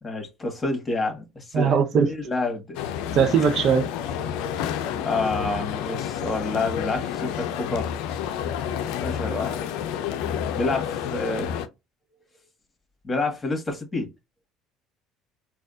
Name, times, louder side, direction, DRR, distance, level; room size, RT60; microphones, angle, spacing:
voice 1, 0.0-2.9 5.0-7.9 9.0-9.6 10.6-11.5 13.0-14.1, left 2 dB, 25° left, 1.8 m, -28 dB
voice 2, 1.5-2.1 3.1-3.9, right 6 dB, 55° right, 0.6 m, -19 dB
sound 1, 2.7-11.7, left 9 dB, 70° left, 0.5 m, -30 dB
4.1 x 2.3 x 2.6 m
hypercardioid pair, 70°, 0 cm